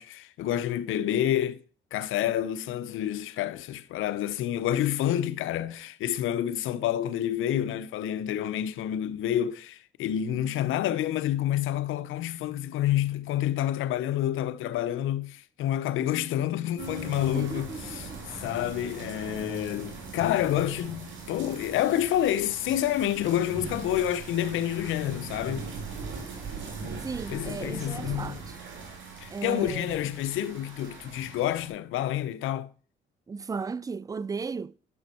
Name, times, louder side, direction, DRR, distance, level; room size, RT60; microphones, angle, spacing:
voice 1, 0.0-1.6 1.9-25.7 27.3-28.4 29.2-32.7, left 11 dB, 85° left, 0.7 m, -28 dB
sound 1, 16.8-31.7, right 4 dB, 70° right, 3.2 m, -40 dB
voice 2, 17.3-18.2 27.0-28.6 29.3-30.0 33.3-34.8, right 5 dB, 20° right, 0.4 m, -35 dB
11.0 x 6.1 x 4.3 m
cardioid pair, 90°, 20 cm